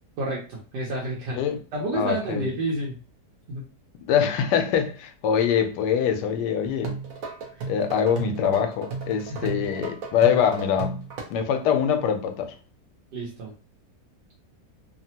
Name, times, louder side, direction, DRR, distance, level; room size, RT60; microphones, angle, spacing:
voice 1, 0.2-1.4 1.7-3.0 3.5-3.6 7.5-7.7 9.2-9.5 13.1-13.5, right 1 dB, 85° right, 1.4 m, -30 dB
voice 2, 1.9-2.4 4.1-6.9 7.7-11.0 11.3-12.5, left 8 dB, 85° left, 1.2 m, -23 dB
sound 1, 6.7-11.2, right 4 dB, 65° right, 1.0 m, -34 dB
3.2 x 2.1 x 2.8 m
omnidirectional pair, 1.8 m